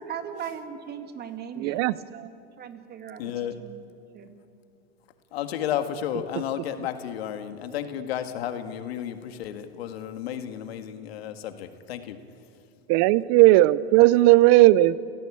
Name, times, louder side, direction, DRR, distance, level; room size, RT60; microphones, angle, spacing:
voice 1, 0.0-3.3 3.6-3.8 4.1-4.4, right 8 dB, 30° right, 7 dB, 2.3 m, -39 dB
voice 2, 1.6-2.0 12.9-15.0, right 17 dB, 50° right, 19 dB, 0.7 m, -17 dB
voice 3, 3.2-3.6 5.3-12.5, left 10 dB, 85° left, 8 dB, 1.9 m, -32 dB
29.5 x 17.0 x 8.6 m, 2.5 s
supercardioid pair, 125°, 30 cm